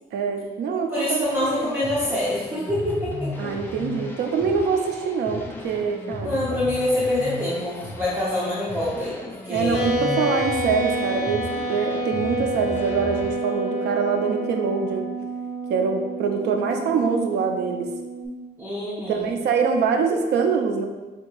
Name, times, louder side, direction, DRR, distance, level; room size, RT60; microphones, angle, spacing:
voice 1, 0.1-1.7 3.4-6.4 9.5-15.1 15.7-17.9 19.1-20.9, right 5 dB, 90° right, 4 dB, 0.6 m, -24 dB
voice 2, 0.9-3.3 6.2-9.1 9.4-9.9 18.6-19.3, left 1 dB, 10° right, -9 dB, 0.8 m, -25 dB
sound 1, 1.2-13.3, left 1 dB, 10° left, 0.4 m, -36 dB
sound 2, 9.7-18.3, right 1 dB, 40° left, 1.2 m, -28 dB
6.7 x 2.9 x 2.3 m, 1.2 s
cardioid pair, 175°, 17 cm